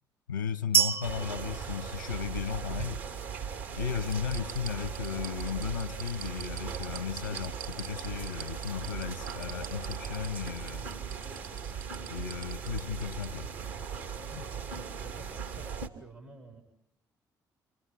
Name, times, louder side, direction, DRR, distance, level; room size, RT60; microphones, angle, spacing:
voice 1, 0.3-3.0 3.7-10.9 12.1-13.5, left 7 dB, 90° left, 0.9 m, -35 dB
sound 1, 0.7-2.7, right 8 dB, 20° right, 0.9 m, -29 dB
sound 2, 1.0-15.9, right 6 dB, 70° right, 2.9 m, -39 dB
sound 3, 2.6-3.6 4.0-13.3 13.6-13.7, right 9 dB, 55° right, 3.2 m, -45 dB
voice 2, 14.3-16.6, right 2 dB, 85° right, 5.5 m, -51 dB
30.0 x 27.5 x 5.7 m
figure-of-eight pair, 45°, 10 cm